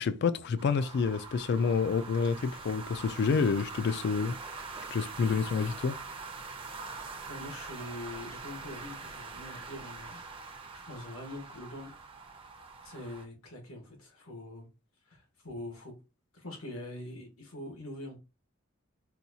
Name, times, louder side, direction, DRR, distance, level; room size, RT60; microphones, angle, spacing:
voice 1, 0.0-4.4 4.9-6.0, left 5 dB, 50° left, 0.3 m, -28 dB
sound 1, 0.6-13.2, right 4 dB, 25° right, 0.5 m, -44 dB
voice 2, 7.3-11.9 12.8-14.7 15.0-15.9 16.3-18.2, left 1 dB, 90° left, 1.4 m, -44 dB
4.2 x 2.3 x 2.7 m
head